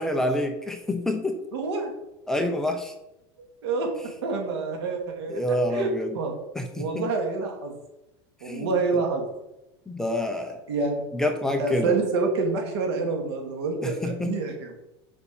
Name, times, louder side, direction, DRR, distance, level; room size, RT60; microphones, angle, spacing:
voice 1, 0.0-1.4 2.3-2.9 5.3-6.2 6.5-7.1 8.4-9.0 9.9-10.6 11.1-12.0 13.8-14.4, left 1 dB, 5° left, 4 dB, 0.7 m, -27 dB
voice 2, 1.5-1.9 3.4-3.9 4.2-5.9 6.1-6.4 6.8-7.8 8.4-9.3 10.7-11.0 11.6-14.7, right 4 dB, 85° right, 2 dB, 2.8 m, -27 dB
7.0 x 5.5 x 7.2 m, 0.91 s
supercardioid pair, 165°, 13 cm